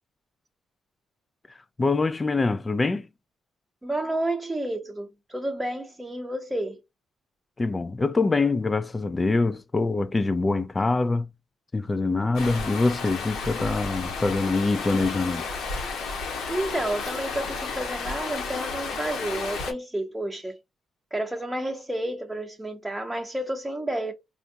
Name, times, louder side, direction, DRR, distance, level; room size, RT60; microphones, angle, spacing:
voice 1, 1.8-3.1 7.6-11.3 11.7-15.5, left 3 dB, 25° left, 0.3 m, -24 dB
voice 2, 3.8-6.8 16.5-20.6 21.1-24.1, right 1 dB, 10° right, 0.7 m, -30 dB
Stream, 12.3-19.7, left 4 dB, 80° left, 1.0 m, -32 dB
4.3 x 2.4 x 2.6 m
cardioid pair, 90°, 0 cm